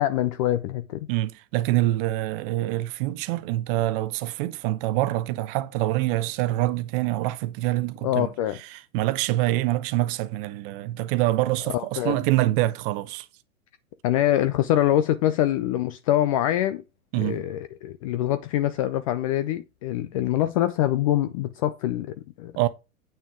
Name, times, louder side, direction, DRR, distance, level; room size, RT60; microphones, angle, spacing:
voice 1, 0.0-1.1 8.0-8.6 11.7-12.2 14.0-16.8 17.1-22.5, left 13 dB, 25° left, 0.3 m, -24 dB
voice 2, 1.1-8.3 8.7-13.3 17.1-17.4 22.6-22.7, right 16 dB, 40° right, 0.9 m, -25 dB
8.7 x 6.2 x 3.7 m
hypercardioid pair, 105°, 42 cm